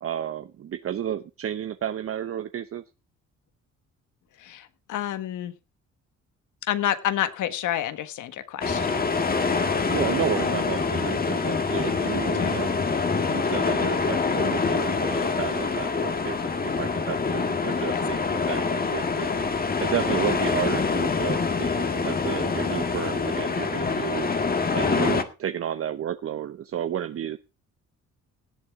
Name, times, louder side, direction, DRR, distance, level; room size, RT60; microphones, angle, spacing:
voice 1, 0.0-2.8 9.9-19.3 19.8-24.3 24.7-27.4, right 10 dB, 50° right, 11 dB, 0.7 m, -32 dB
voice 2, 4.4-5.5 6.6-9.1 12.4-12.6 17.9-18.0 24.8-25.2, left 11 dB, 80° left, 11 dB, 1.4 m, -29 dB
sound 1, 8.6-25.2, left 4 dB, 30° left, 1.6 m, -25 dB
17.5 x 8.3 x 3.6 m, 0.29 s
cardioid pair, 90°, 30 cm